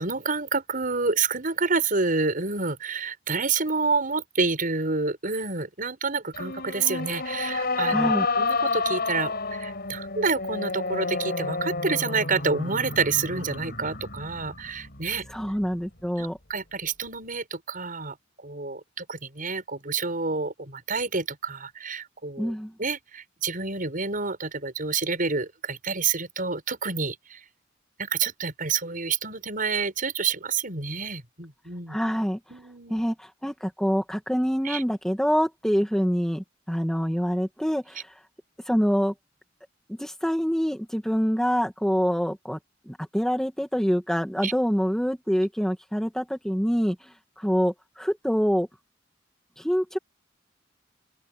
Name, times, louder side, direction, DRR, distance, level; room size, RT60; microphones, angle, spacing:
voice 1, 0.0-15.3 16.2-18.2 18.4-27.4 28.0-32.0 32.5-33.0 34.6-34.8 44.4-44.5, right 4 dB, 45° right, 6.9 m, -28 dB
sound 1, 6.3-15.7, left 3 dB, 55° left, 5.5 m, -30 dB
voice 2, 7.9-8.3 15.3-16.4 22.4-22.7 31.9-32.4 32.9-38.1 38.7-39.1 39.9-42.6 42.9-48.7 49.6-50.0, equal, 5° left, 2.2 m, -26 dB
open air
head